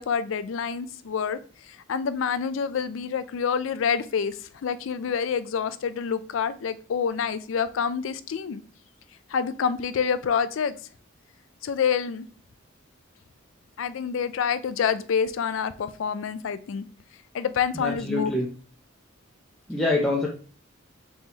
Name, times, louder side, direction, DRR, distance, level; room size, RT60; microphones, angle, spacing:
voice 1, 0.0-8.6 9.3-10.8 11.6-12.2 13.8-16.8 17.3-18.3, left 6 dB, 70° left, 13 dB, 0.4 m, -27 dB
voice 2, 17.7-18.5 19.7-20.3, left 2 dB, 5° left, -4 dB, 0.6 m, -25 dB
4.1 x 3.7 x 2.9 m, 0.41 s
head